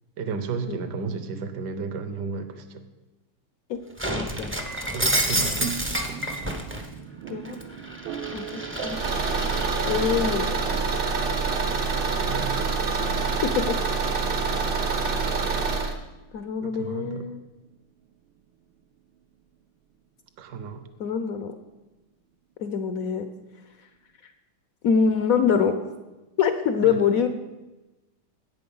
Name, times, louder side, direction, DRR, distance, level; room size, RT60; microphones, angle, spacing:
voice 1, 0.2-2.8 4.9-6.2 12.2-13.4 16.6-17.3 20.4-20.9 26.9-27.0, right 5 dB, 60° right, 10 dB, 1.4 m, -33 dB
Shatter, 4.0-6.8 7.3-10.4, right 1 dB, 20° right, 0.3 m, -29 dB
sound 1, 5.8-19.5, right 8 dB, 85° right, 1.5 m, -43 dB
voice 2, 8.3-9.0 9.8-10.8 13.4-13.8 16.3-17.4 21.0-21.5 22.6-23.3 24.8-25.8 26.4-27.3, left 7 dB, 70° left, 9 dB, 0.8 m, -24 dB
Car / Engine, 8.9-15.9, right 4 dB, 45° right, 0.7 m, -26 dB
11.5 x 8.4 x 5.4 m, 1.1 s
omnidirectional pair, 2.2 m